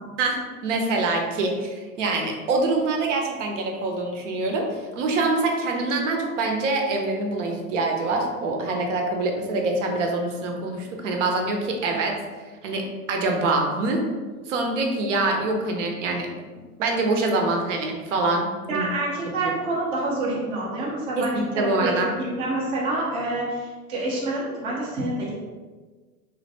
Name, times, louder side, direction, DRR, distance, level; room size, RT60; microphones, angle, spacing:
voice 1, 0.2-12.2 12.6-14.1 14.5-16.3 16.8-18.9 19.4-19.5 21.2-22.1, right 2 dB, 55° right, 2 dB, 0.6 m, -25 dB
voice 2, 18.7-21.9 22.2-25.3, right 2 dB, 15° right, -5 dB, 0.4 m, -27 dB
3.1 x 2.5 x 2.6 m, 1.4 s
figure-of-eight pair, 100°, 45 cm